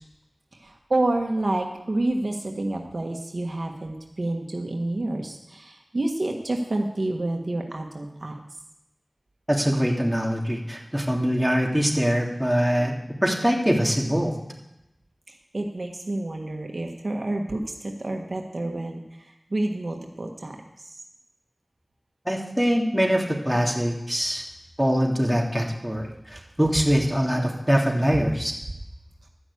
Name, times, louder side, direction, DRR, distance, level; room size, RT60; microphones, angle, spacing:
voice 1, 0.5-8.3 15.3-20.9, right 2 dB, 65° right, 2 dB, 1.3 m, -29 dB
voice 2, 9.5-12.9 13.2-14.3 22.3-24.4 24.8-28.5, equal, ahead, -1 dB, 2.7 m, -23 dB
12.5 x 6.1 x 8.3 m, 0.89 s
wide cardioid pair, 40°, 0 cm